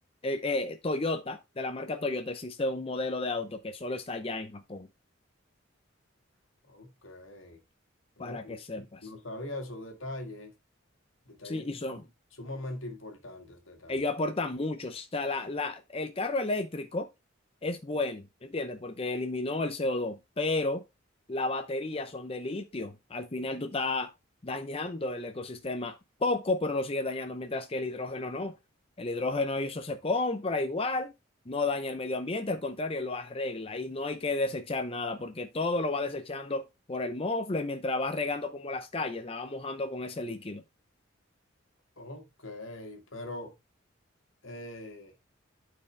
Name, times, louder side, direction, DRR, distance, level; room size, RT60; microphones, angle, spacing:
voice 1, 0.2-4.9 8.2-9.1 11.4-12.0 13.9-17.1 17.6-20.8 21.3-24.1 24.4-28.5 29.0-31.1 31.5-40.6, left 2 dB, 30° left, 0.6 m, -32 dB
voice 2, 6.7-7.6 8.2-10.5 11.3-12.1 12.4-14.0 42.0-43.5 44.4-45.1, left 1 dB, 75° left, 1.9 m, -42 dB
12.0 x 4.8 x 3.3 m
head